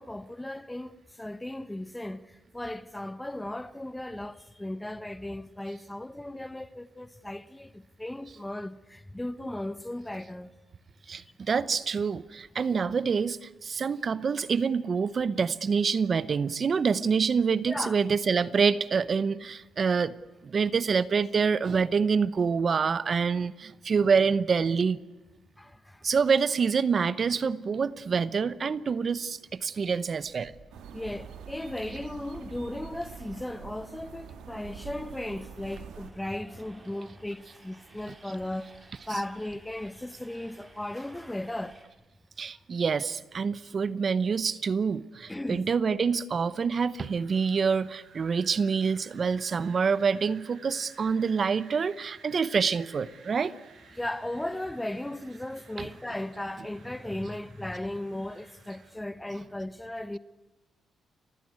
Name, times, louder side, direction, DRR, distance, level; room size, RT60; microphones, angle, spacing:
voice 1, 0.0-2.2 2.5-10.5 17.7-18.0 25.6-26.0 30.9-38.7 39.1-41.8 45.3-45.7 54.0-60.2, left 1 dB, 10° left, 0.8 m, -36 dB
voice 2, 11.1-20.1 20.4-25.0 26.0-30.5 39.1-39.2 42.4-53.5 55.8-55.9, right 5 dB, 40° right, 0.8 m, -26 dB
Train, 28.6-41.9, right 2 dB, 20° right, 4.9 m, -58 dB
sound 1, 30.7-36.1, right 7 dB, 85° right, 2.2 m, -45 dB
Wind, 46.9-58.9, right 5 dB, 65° right, 6.7 m, -55 dB
30.0 x 15.5 x 9.5 m
cardioid pair, 120°, 0 cm